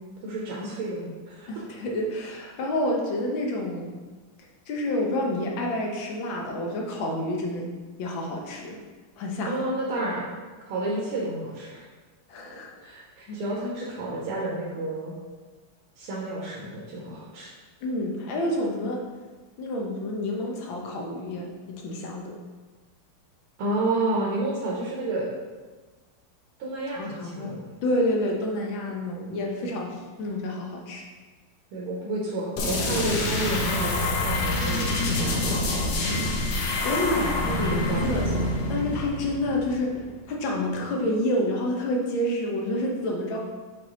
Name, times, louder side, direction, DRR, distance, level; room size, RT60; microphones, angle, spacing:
voice 1, 0.2-1.5 9.4-10.3 10.7-11.9 12.8-15.1 16.0-17.5 23.6-25.3 26.6-27.7 29.6-29.9 31.7-35.6 35.8-36.0 37.2-37.3 37.7-38.4, right 2 dB, 75° right, -5 dB, 1.9 m, -31 dB
voice 2, 1.5-3.9 4.7-7.7 8.0-8.8 9.2-9.7 12.3-12.9 13.3-13.4 17.8-19.0 19.6-22.4 27.0-27.5 27.8-31.0 36.8-38.3 38.7-43.4, left 1 dB, 65° left, 0 dB, 1.7 m, -29 dB
sound 1, 32.6-40.1, left 2 dB, 90° left, 1.9 m, -26 dB
6.9 x 4.1 x 3.8 m, 1.3 s
omnidirectional pair, 2.4 m